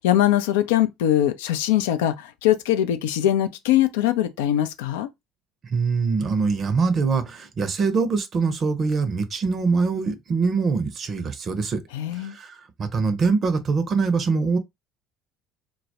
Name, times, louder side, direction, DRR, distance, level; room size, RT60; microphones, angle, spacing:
voice 1, 0.0-5.1 11.9-12.3, left 12 dB, 75° left, 0.3 m, -22 dB
voice 2, 5.6-11.8 12.2-14.6, right 4 dB, 40° right, 0.5 m, -23 dB
2.2 x 2.0 x 2.7 m
hypercardioid pair, 60°, 0 cm